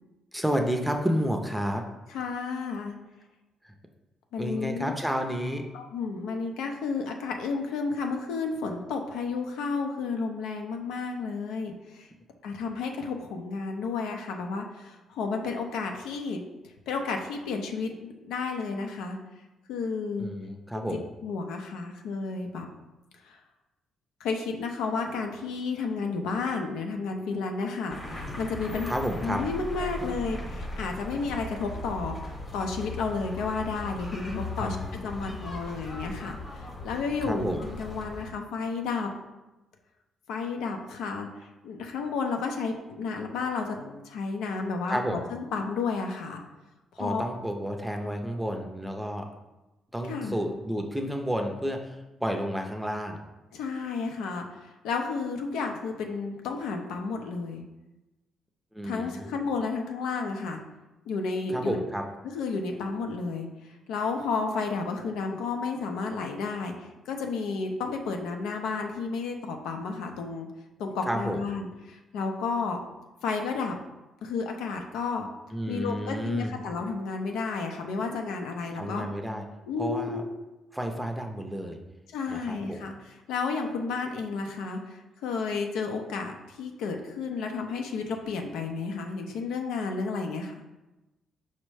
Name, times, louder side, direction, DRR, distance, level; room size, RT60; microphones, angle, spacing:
voice 1, 0.3-1.8 3.6-3.7 4.4-5.6 20.2-21.1 28.9-29.4 34.6-35.0 37.2-37.7 44.9-45.2 47.0-49.3 49.9-52.0 52.2-53.2 58.7-59.3 61.5-62.0 71.0-71.4 75.5-76.5 78.7-79.4 79.8-80.2 80.7-81.8 82.3-82.9, equal, 5° right, 3 dB, 0.5 m, -31 dB
voice 2, 2.1-3.0 4.3-4.9 5.7-12.1 12.4-16.4 16.9-19.2 19.7-20.3 20.8-20.9 21.2-22.7 23.2-23.4 24.2-28.9 29.2-34.8 35.0-36.4 36.8-39.2 40.3-41.3 41.6-46.4 46.9-47.2 50.1-50.4 53.5-57.6 58.8-60.6 61.1-61.8 62.2-70.5 70.8-72.8 73.2-73.8 74.2-75.3 75.7-79.1 79.7-80.2 82.1-90.5, left 4 dB, 90° left, 3 dB, 0.5 m, -32 dB
sound 1, 27.9-38.3, left 1 dB, 20° left, 0.9 m, -38 dB
5.2 x 2.1 x 4.7 m, 1.1 s
cardioid pair, 95°, 0 cm